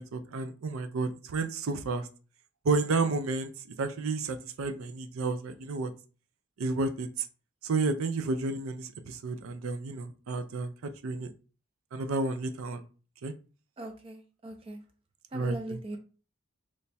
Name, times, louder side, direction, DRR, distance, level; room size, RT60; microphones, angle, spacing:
voice 1, 0.0-2.1 2.6-3.5 3.8-5.9 6.6-7.3 7.6-10.7 11.0-11.3 11.9-12.8 13.2-13.3 15.3-16.0, right 3 dB, 85° right, 9 dB, 0.5 m, -31 dB
voice 2, 13.8-14.8 15.3-16.0, right 1 dB, 25° right, 5 dB, 0.4 m, -40 dB
3.2 x 2.2 x 4.1 m, 0.36 s
head